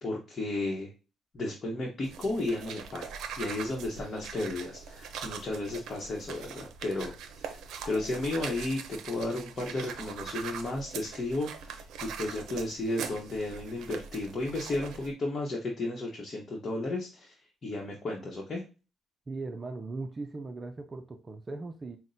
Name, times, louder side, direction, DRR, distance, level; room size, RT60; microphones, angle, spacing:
voice 1, 0.0-0.9 1.3-17.3 17.6-18.6, left 2 dB, 40° left, -1 dB, 1.0 m, -34 dB
sound 1, 2.0-15.1, right 7 dB, 80° right, 0.5 m, -42 dB
voice 2, 19.3-22.0, right 3 dB, 30° right, 6 dB, 0.4 m, -39 dB
5.9 x 2.1 x 2.6 m, 0.31 s
cardioid pair, 90°, 0 cm